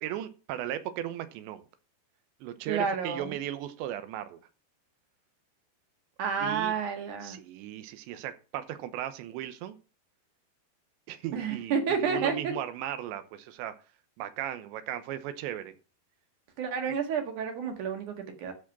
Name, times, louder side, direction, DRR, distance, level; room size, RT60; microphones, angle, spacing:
voice 1, 0.0-1.6 2.4-4.4 6.4-6.7 7.2-9.8 11.1-13.7 14.2-15.7, right 12 dB, 90° right, 10 dB, 3.3 m, -36 dB
voice 2, 2.7-3.3 6.2-7.4 11.3-12.5 16.6-18.5, right 6 dB, 55° right, 4 dB, 2.8 m, -30 dB
13.5 x 4.8 x 6.0 m, 0.34 s
omnidirectional pair, 5.0 m